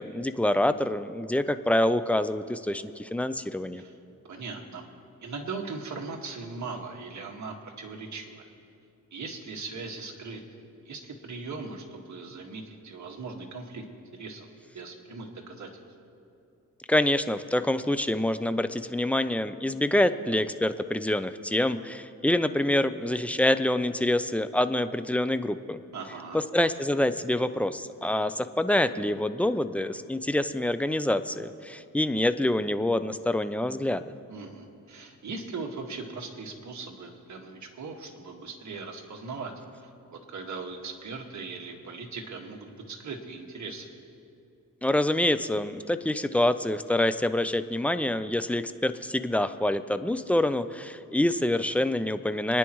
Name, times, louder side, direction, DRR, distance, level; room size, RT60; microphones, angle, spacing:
voice 1, 0.0-3.8 16.9-25.8 26.3-34.0 44.8-52.6, left 1 dB, 5° left, 11 dB, 0.5 m, -26 dB
voice 2, 4.3-4.9 5.2-8.4 9.1-10.4 10.9-13.8 14.1-14.5 14.7-15.7 25.9-26.4 34.3-39.5 39.8-43.9, right 4 dB, 55° right, 1 dB, 1.9 m, -39 dB
28.5 x 10.0 x 3.1 m, 2.6 s
cardioid pair, 85°, 34 cm